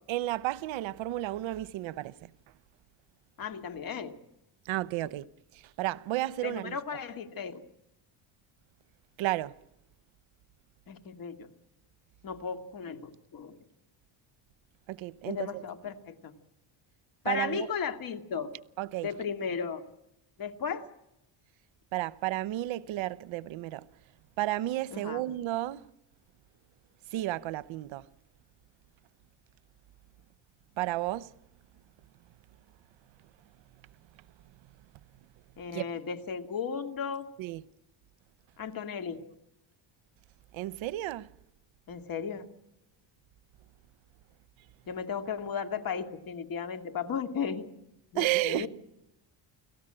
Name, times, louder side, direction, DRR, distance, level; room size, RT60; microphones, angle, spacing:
voice 1, 0.1-2.3 4.6-5.3 5.5-6.8 9.2-9.6 14.9-15.6 17.2-17.7 18.8-19.1 21.9-23.9 24.4-25.9 27.1-28.1 30.8-31.3 35.7-35.9 37.4-37.6 40.5-41.3 48.1-48.7, right 15 dB, 85° right, 0.9 m, -32 dB
voice 2, 3.4-4.1 6.4-7.6 10.9-11.5 12.2-13.6 15.3-16.3 17.2-18.5 19.0-19.8 20.4-20.9 24.9-25.2 35.6-37.3 38.6-39.2 41.9-42.5 44.9-47.7 48.1-48.7, left 6 dB, 45° left, 2.2 m, -35 dB
29.5 x 18.5 x 8.9 m
cardioid pair, 165°, 46 cm